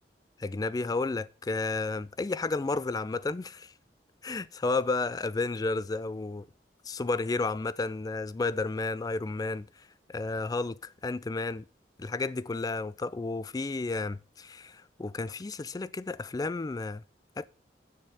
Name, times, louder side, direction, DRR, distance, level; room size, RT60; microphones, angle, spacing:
voice 1, 0.4-3.7 4.2-6.5 6.9-9.7 10.1-11.6 12.0-17.0 17.4-17.5, left 3 dB, 20° left, 0.3 m, -32 dB
8.9 x 6.6 x 4.9 m
head